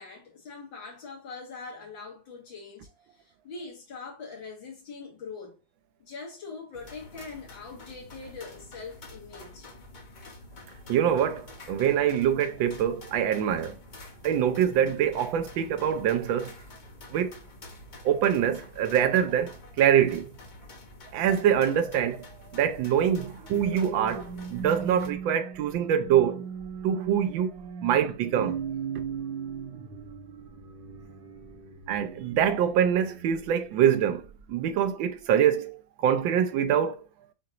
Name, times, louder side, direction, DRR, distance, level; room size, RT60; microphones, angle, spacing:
voice 1, 0.0-5.6 6.0-9.7, left 4 dB, 80° left, 2.1 m, -42 dB
sound 1, 6.7-25.1, left 2 dB, 60° left, 0.4 m, -48 dB
voice 2, 10.9-13.8 14.2-16.5 17.1-17.4 18.0-20.3 21.1-24.2 24.5-26.5 26.8-28.6 31.9-37.0, right 9 dB, 90° right, 1.4 m, -25 dB
sound 2, 23.4-33.7 34.2-34.5, right 6 dB, 70° right, 1.6 m, -38 dB
6.2 x 2.9 x 2.4 m
omnidirectional pair, 2.0 m